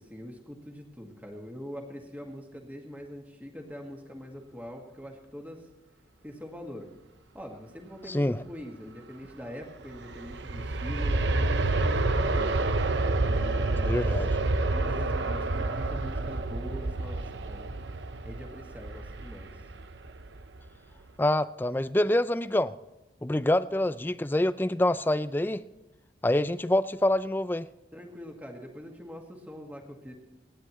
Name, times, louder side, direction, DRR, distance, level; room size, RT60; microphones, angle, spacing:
voice 1, 0.0-5.7 6.2-6.9 7.3-12.5 13.2-14.0 14.7-17.7 18.2-19.6 27.9-30.1, equal, 10° right, 1.9 m, -43 dB
voice 2, 8.1-8.4 13.9-14.3 21.2-22.7 23.2-25.6 26.2-27.7, left 1 dB, 10° left, 0.4 m, -26 dB
Aircraft, 9.7-20.6 21.0-21.1, right 2 dB, 80° right, 0.8 m, -29 dB
29.0 x 10.0 x 3.1 m
head